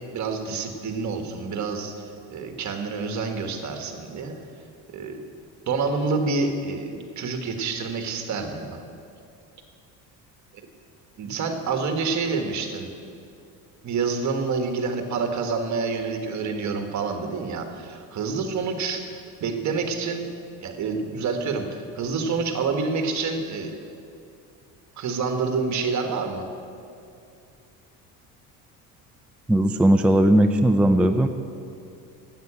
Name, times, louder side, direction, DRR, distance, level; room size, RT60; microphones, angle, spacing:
voice 1, 0.1-1.9 2.3-4.3 4.9-5.2 5.7-8.8 11.2-12.9 13.8-19.1 19.4-20.2 20.6-23.8 25.0-26.5, right 4 dB, 50° right, 5 dB, 1.5 m, -27 dB
voice 2, 29.5-31.3, right 1 dB, 5° right, 6 dB, 0.4 m, -18 dB
9.5 x 7.9 x 8.6 m, 2.5 s
cardioid pair, 110°, 37 cm